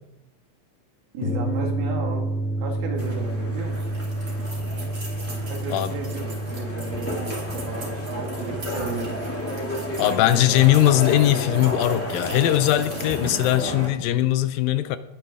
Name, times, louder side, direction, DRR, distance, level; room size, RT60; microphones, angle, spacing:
voice 1, 1.1-2.3 2.6-4.0 5.3-9.2, right 4 dB, 85° right, 3.8 m, -34 dB
sound 1, 1.2-14.1, right 1 dB, 40° left, 2.5 m, -31 dB
sound 2, 3.0-13.9, equal, 5° left, 1.3 m, -32 dB
sound 3, 3.7-13.8, right 2 dB, 40° right, 4.6 m, -42 dB
voice 2, 10.0-15.0, left 13 dB, 80° left, 2.3 m, -20 dB
20.0 x 8.7 x 3.6 m
omnidirectional pair, 4.2 m